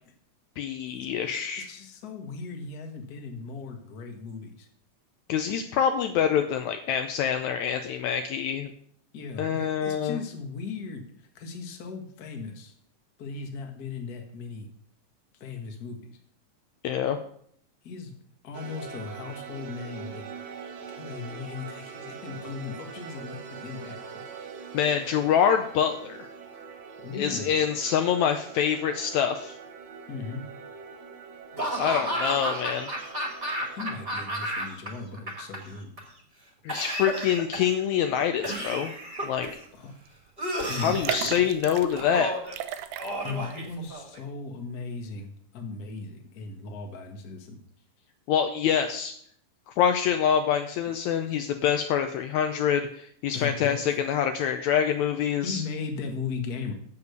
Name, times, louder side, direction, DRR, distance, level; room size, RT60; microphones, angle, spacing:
voice 1, 0.6-1.7 5.3-8.7 9.4-10.2 16.8-17.2 24.7-26.3 27.1-29.6 31.7-32.9 36.6-38.9 39.2-39.5 40.8-42.3 48.3-49.1 49.8-55.6, left 8 dB, 80° left, 7 dB, 1.7 m, -25 dB
voice 2, 1.6-4.7 9.1-12.7 13.2-14.7 15.4-16.0 17.8-18.2 18.4-20.2 20.9-24.0 27.0-27.5 30.1-30.4 33.7-35.9 39.7-40.0 40.7-40.9 43.2-47.6 53.3-54.0 54.4-54.5 55.4-56.7, left 4 dB, 45° left, 3 dB, 1.3 m, -37 dB
sound 1, 18.5-34.1, right 6 dB, 65° right, 1.9 m, -43 dB
Laughter / Cough, 31.6-34.9 35.1-36.0 36.7-37.8 38.4-39.6 40.4-41.3 42.0-42.5 43.0-44.2, right 1 dB, 20° right, 1.6 m, -32 dB
sound 2, 39.6-39.8 40.1-40.2 40.9-42.1 42.5-43.5 43.9-44.0, right 11 dB, 90° right, 2.3 m, -34 dB
8.5 x 7.0 x 6.7 m, 0.64 s
omnidirectional pair, 3.7 m